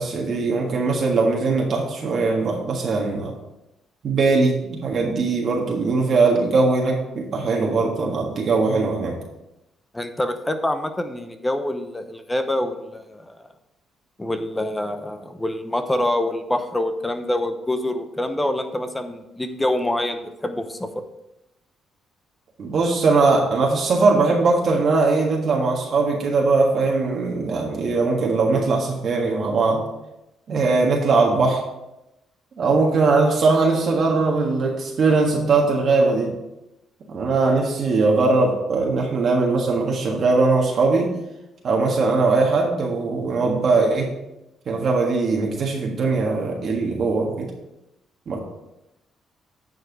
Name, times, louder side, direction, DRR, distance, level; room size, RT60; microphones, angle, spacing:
voice 1, 0.0-3.3 4.0-9.2 22.6-29.8 30.5-31.6 32.6-36.3 37.1-41.2 41.6-44.1 44.7-47.5 48.3-48.4, right 3 dB, 55° right, -1 dB, 1.6 m, -20 dB
voice 2, 9.9-13.4 14.2-21.0, left 1 dB, 10° left, 8 dB, 0.9 m, -26 dB
9.6 x 4.7 x 4.8 m, 0.91 s
cardioid pair, 90°, 0 cm